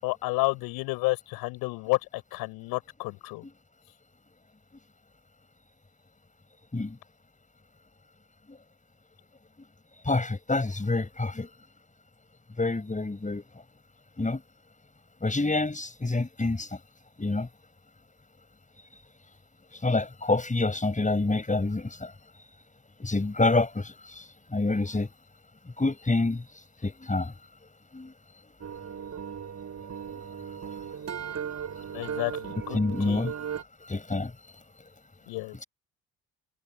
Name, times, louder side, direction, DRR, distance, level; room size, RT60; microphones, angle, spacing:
voice 1, 0.0-3.4 31.9-33.3 35.3-35.6, left 23 dB, 70° left, 7.0 m, -31 dB
voice 2, 10.0-11.5 12.6-13.4 14.2-14.4 15.2-16.7 17.2-17.5 19.8-22.1 23.0-24.2 24.5-25.1 25.8-26.4 26.8-27.3 27.9-28.1 32.7-33.3 33.9-34.3, left 3 dB, 20° left, 6.8 m, -27 dB
sound 1, 28.6-33.6, right 7 dB, 45° right, 7.9 m, -37 dB
figure-of-eight pair, 45°, 38 cm